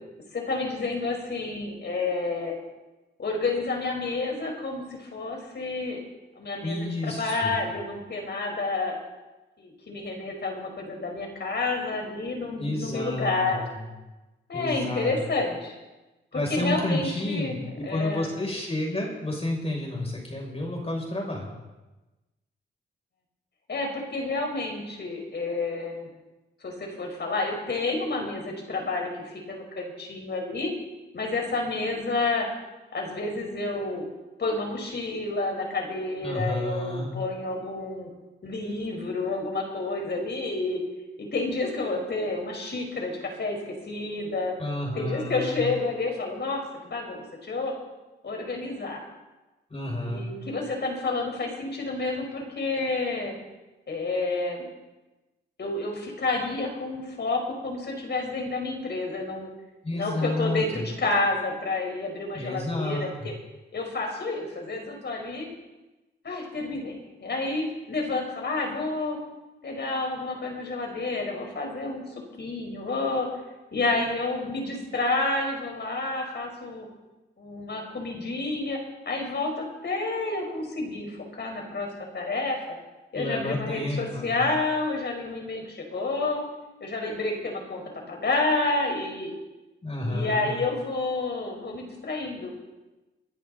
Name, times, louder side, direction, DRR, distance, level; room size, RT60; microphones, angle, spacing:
voice 1, 0.3-2.6 3.2-6.0 6.4-9.0 9.6-13.6 14.5-15.8 16.3-18.3 23.7-26.1 26.6-30.7 31.1-32.5 32.9-34.0 34.4-38.1 38.4-40.8 41.2-44.5 45.0-47.7 48.2-49.0 49.9-53.3 53.9-54.6 55.6-59.5 59.9-63.3 63.7-65.5 66.2-66.9 67.2-69.2 69.6-72.0 72.4-73.3 73.7-76.9 77.4-78.8 79.0-81.9 82.1-82.6 83.1-86.4 86.8-87.8 88.1-89.3 90.0-92.5, left 3 dB, 55° left, 1 dB, 4.9 m, -29 dB
voice 2, 6.6-7.5 12.6-13.8 14.5-15.1 16.3-21.5 36.2-37.1 44.6-45.6 49.7-50.2 59.8-60.8 62.3-63.3 83.1-84.4 89.8-90.5, left 1 dB, 30° left, -1 dB, 6.9 m, -30 dB
25.0 x 10.5 x 4.1 m, 1.1 s
cardioid pair, 65°, 21 cm